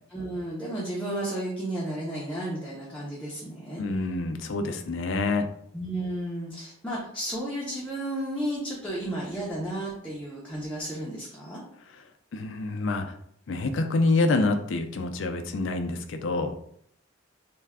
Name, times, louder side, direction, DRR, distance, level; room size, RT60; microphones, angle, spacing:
voice 1, 0.1-3.8 5.7-11.6, right 1 dB, 5° left, -6 dB, 0.5 m, -33 dB
voice 2, 3.8-5.5 12.3-13.1 13.5-16.5, left 3 dB, 60° left, 6 dB, 0.4 m, -27 dB
3.2 x 2.2 x 3.5 m, 0.67 s
head